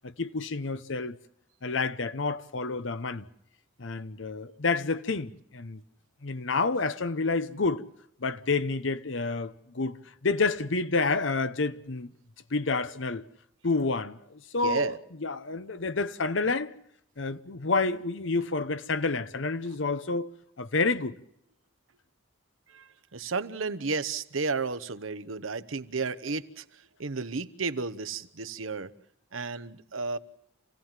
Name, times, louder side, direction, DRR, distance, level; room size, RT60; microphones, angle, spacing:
voice 1, 0.0-1.2 1.6-3.2 3.8-5.8 6.2-7.8 8.2-10.0 10.2-12.1 12.5-13.2 13.6-16.7 17.2-21.1, left 3 dB, 70° left, 0.9 m, -29 dB
voice 2, 14.6-15.0 19.7-19.8 22.7-28.9 29.3-30.2, right 4 dB, 90° right, 1.0 m, -33 dB
27.5 x 16.5 x 7.4 m
head